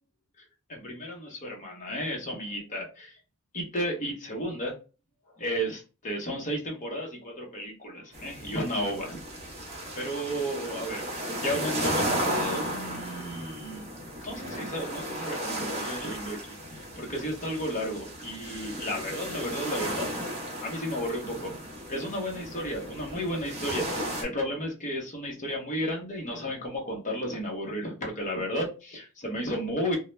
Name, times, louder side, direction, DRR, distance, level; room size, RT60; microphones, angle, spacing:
voice 1, 0.7-3.2 3.5-4.7 5.4-9.2 9.9-11.0 11.4-13.8 14.2-16.4 16.7-20.1 20.6-21.5 21.9-30.0, equal, 35° left, 0 dB, 0.8 m, -33 dB
sound 1, 8.1-24.2, right 1 dB, 30° right, 0.6 m, -34 dB
2.2 x 2.1 x 3.0 m, 0.32 s
head